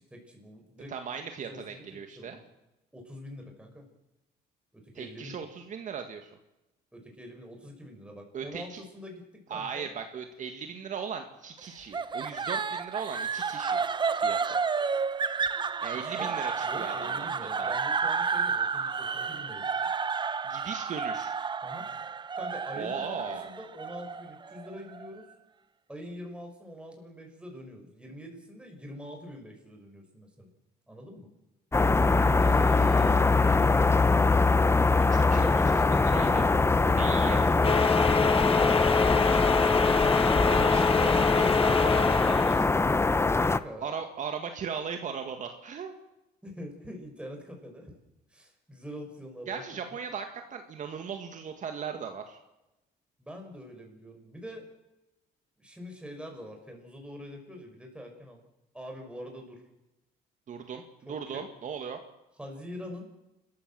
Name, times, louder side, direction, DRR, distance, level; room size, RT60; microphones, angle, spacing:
voice 1, 0.0-0.9 1.4-2.5 2.9-3.9 4.7-5.5 6.9-9.2 9.5-9.9 15.9-16.3 16.6-19.9 21.6-21.9 22.3-25.3 25.9-30.5 30.9-31.3 32.5-33.9 43.3-44.0 46.4-47.9 48.3-50.0 53.2-54.6 55.6-58.4 58.7-59.6 61.1-61.4 62.4-63.0, equal, 5° right, 2 dB, 6.3 m, -44 dB
voice 2, 0.9-2.4 4.9-6.3 8.3-8.8 9.5-13.8 14.2-14.6 15.8-17.3 17.6-17.7 20.4-21.3 22.7-23.5 32.1-33.2 35.1-36.5 36.8-37.6 40.5-42.7 43.8-46.0 49.5-52.4 60.5-60.8 61.1-62.0, right 6 dB, 45° right, 5 dB, 1.9 m, -38 dB
sound 1, 11.9-25.1, right 5 dB, 25° right, 0.8 m, -31 dB
sound 2, 31.7-43.6, left 3 dB, 15° left, 0.8 m, -23 dB
sound 3, 37.6-42.6, left 6 dB, 35° left, 1.4 m, -27 dB
29.5 x 14.5 x 7.7 m, 0.97 s
cardioid pair, 110°, 17 cm